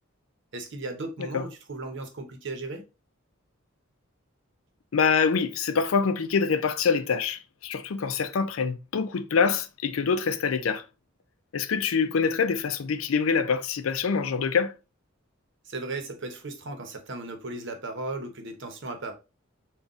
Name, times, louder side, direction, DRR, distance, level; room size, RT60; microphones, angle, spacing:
voice 1, 0.5-2.9 15.7-19.1, right 2 dB, 60° right, 0.8 m, -36 dB
voice 2, 4.9-10.8 11.5-14.7, left 5 dB, 80° left, 0.4 m, -25 dB
3.9 x 2.3 x 3.5 m
head